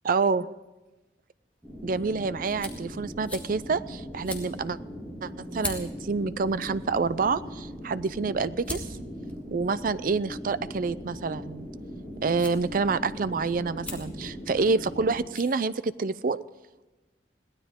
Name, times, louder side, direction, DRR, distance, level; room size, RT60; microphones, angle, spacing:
voice 1, 0.0-0.5 1.8-4.8 5.2-8.9 9.5-11.7 12.2-16.4, right 4 dB, 50° right, 16 dB, 0.5 m, -27 dB
sound 1, 1.5-16.3, left 2 dB, 10° left, 2.2 m, -45 dB
sound 2, 1.6-15.1, equal, 10° right, 7.2 m, -40 dB
22.0 x 16.5 x 3.7 m, 1.1 s
head